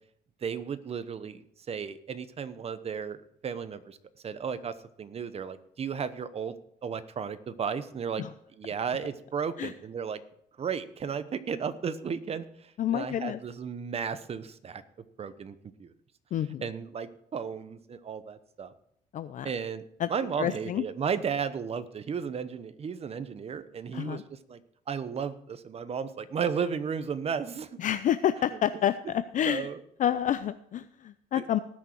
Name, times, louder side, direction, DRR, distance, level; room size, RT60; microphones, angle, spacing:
voice 1, 0.4-4.0 4.2-6.5 6.8-8.2 8.6-10.2 10.6-14.8 15.2-15.9 16.6-18.7 19.4-19.8 20.1-24.6 24.9-27.8 28.5-28.6 29.4-29.8 31.4-31.6, right 6 dB, 35° right, 12 dB, 1.0 m, -34 dB
voice 2, 12.8-13.4 16.3-16.6 19.1-19.5 20.0-20.1 20.4-20.8 23.9-24.2 27.8-28.9 29.3-29.7 30.0-31.6, left 10 dB, 50° left, 12 dB, 0.5 m, -28 dB
18.5 x 6.5 x 4.6 m, 0.69 s
cardioid pair, 110°, 17 cm